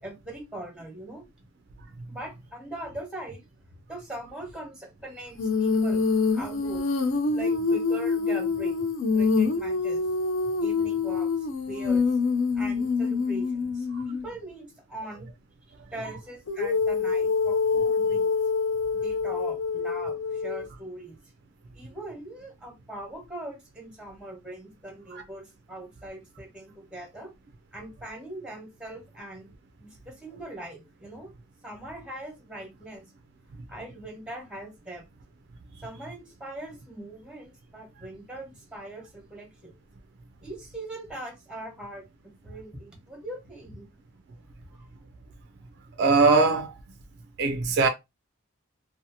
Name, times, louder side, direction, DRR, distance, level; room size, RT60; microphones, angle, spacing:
voice 1, 0.0-1.2 2.1-3.5 3.9-6.1 6.3-6.9 7.3-8.9 9.1-10.1 10.6-12.1 12.5-15.3 15.9-18.4 18.9-21.2 21.7-27.3 27.7-29.5 29.8-31.3 31.6-33.0 33.7-35.1 35.8-39.7 40.4-43.8 44.6-44.8, right 1 dB, 5° right, 0.9 m, -41 dB
Female singing, 5.4-14.3 16.5-20.7, left 4 dB, 65° left, 0.4 m, -26 dB
voice 2, 46.0-46.7 47.4-47.9, right 4 dB, 55° right, 0.3 m, -21 dB
2.7 x 2.0 x 2.7 m
head